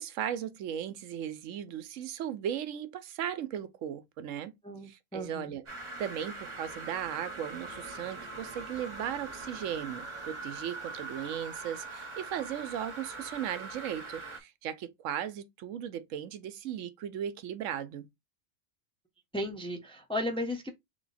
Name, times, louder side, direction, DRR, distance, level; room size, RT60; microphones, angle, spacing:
voice 1, 0.0-4.5 4.8-5.7 6.0-18.1, right 9 dB, 80° right, 1.0 m, -37 dB
voice 2, 4.6-5.5 19.3-20.7, left 1 dB, 5° left, 0.6 m, -35 dB
sound 1, 5.7-14.4, right 3 dB, 25° right, 0.8 m, -42 dB
3.4 x 3.0 x 4.0 m
omnidirectional pair, 1.3 m